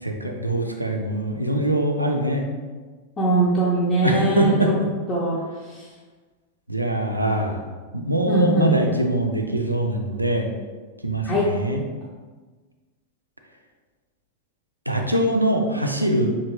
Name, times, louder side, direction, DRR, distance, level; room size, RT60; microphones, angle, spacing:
voice 1, 0.0-2.4 4.0-4.8 6.7-7.6 7.9-10.5 11.0-11.8 14.9-16.3, right 1 dB, 85° right, 3 dB, 0.4 m, -23 dB
voice 2, 3.2-4.8 5.1-5.4 5.7-5.9 8.3-8.7 11.2-11.5, right 2 dB, 25° left, -6 dB, 0.6 m, -21 dB
3.5 x 2.8 x 2.8 m, 1.4 s
figure-of-eight pair, 90°, 0 cm